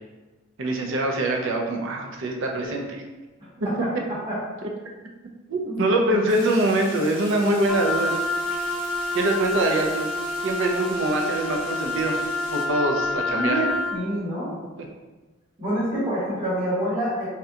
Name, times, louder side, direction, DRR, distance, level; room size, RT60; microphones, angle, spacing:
voice 1, 0.6-3.0 5.5-8.1 9.1-10.1 10.4-12.2 12.5-13.6, right 1 dB, 65° right, 2 dB, 0.5 m, -24 dB
Shower water bath, 6.3-12.7, left 2 dB, 70° left, 0.7 m, -42 dB
Wind instrument woodwind instrument, 7.7-14.0, left 2 dB, ahead, 0.4 m, -28 dB
voice 2, 13.3-14.5 15.6-17.3, equal, 20° right, -10 dB, 1.1 m, -26 dB
2.7 x 2.2 x 3.6 m, 1.2 s
head